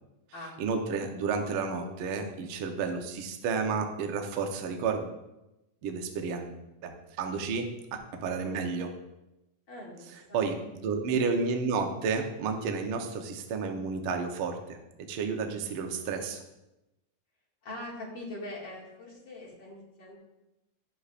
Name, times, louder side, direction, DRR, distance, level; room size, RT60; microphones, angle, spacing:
voice 1, 0.6-5.1 5.8-6.9 7.2-7.7 8.2-8.9 10.3-14.8 15.1-16.4, right 5 dB, 85° right, 4 dB, 1.1 m, -31 dB
voice 2, 9.7-10.4 17.6-20.2, left 1 dB, 40° left, -4 dB, 2.4 m, -42 dB
11.5 x 8.2 x 2.5 m, 0.94 s
omnidirectional pair, 3.7 m